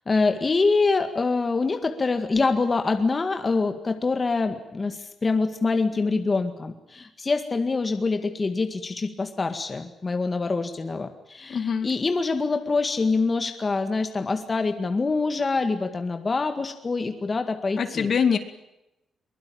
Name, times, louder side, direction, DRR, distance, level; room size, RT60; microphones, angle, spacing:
voice 1, 0.1-18.1, left 3 dB, 25° left, 7 dB, 1.9 m, -25 dB
voice 2, 11.5-11.9 17.8-18.4, left 6 dB, 50° left, 9 dB, 2.2 m, -23 dB
23.0 x 21.5 x 8.8 m, 0.91 s
cardioid pair, 140°, 0 cm